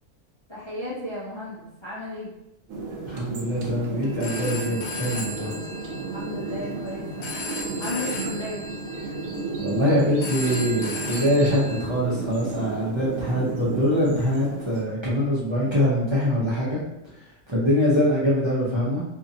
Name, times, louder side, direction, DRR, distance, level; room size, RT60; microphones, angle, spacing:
voice 1, 0.5-2.3 6.1-7.3 7.8-8.7, left 1 dB, 30° left, -9 dB, 0.5 m, -34 dB
sound 1, 2.7-14.8, right 3 dB, 80° right, 1.0 m, -33 dB
voice 2, 3.0-5.5 9.6-16.8 17.5-19.0, equal, 30° right, -9 dB, 0.5 m, -23 dB
Telephone, 4.0-11.9, left 2 dB, 80° left, 1.1 m, -36 dB
2.7 x 2.6 x 2.6 m, 0.86 s
omnidirectional pair, 1.3 m